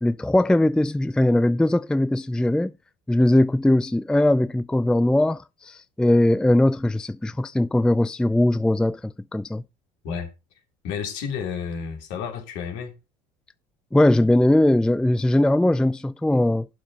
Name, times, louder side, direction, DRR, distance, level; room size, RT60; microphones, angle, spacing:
voice 1, 0.0-2.7 3.1-9.6 13.9-16.7, left 1 dB, 5° left, 0.4 m, -20 dB
voice 2, 10.8-12.9, left 7 dB, 65° left, 2.9 m, -31 dB
11.5 x 4.9 x 5.4 m
figure-of-eight pair, 60°, 21 cm